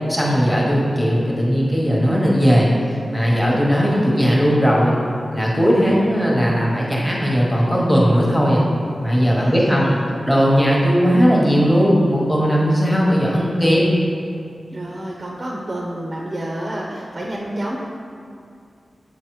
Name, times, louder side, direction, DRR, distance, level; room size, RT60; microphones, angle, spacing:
voice 1, 0.1-2.7 3.1-5.0 5.3-8.6 9.0-9.9 10.2-13.8, equal, 5° left, -5 dB, 0.9 m, -17 dB
voice 2, 9.3-10.0 14.7-17.8, right 1 dB, 35° right, -2 dB, 0.5 m, -29 dB
7.1 x 4.6 x 3.1 m, 2.4 s
wide cardioid pair, 120°, 0 cm